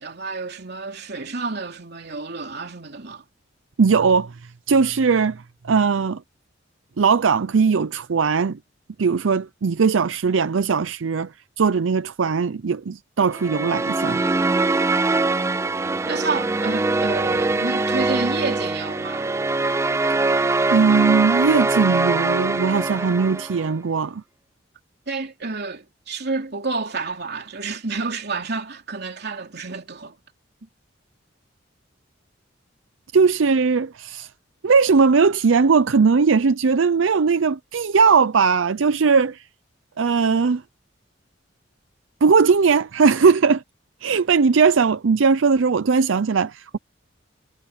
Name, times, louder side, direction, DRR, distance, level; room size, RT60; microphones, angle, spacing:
voice 1, 0.0-3.2 16.1-19.3 25.1-30.1, right 3 dB, 60° right, 3.1 m, -29 dB
voice 2, 3.8-4.3 4.7-6.2 7.0-8.6 9.0-11.3 11.6-14.2 20.7-24.2 33.1-34.3 34.6-39.4 40.0-40.6 42.2-43.6 44.0-46.8, right 5 dB, 85° right, 0.5 m, -19 dB
sound 1, 13.3-23.7, right 3 dB, 15° right, 0.4 m, -22 dB
head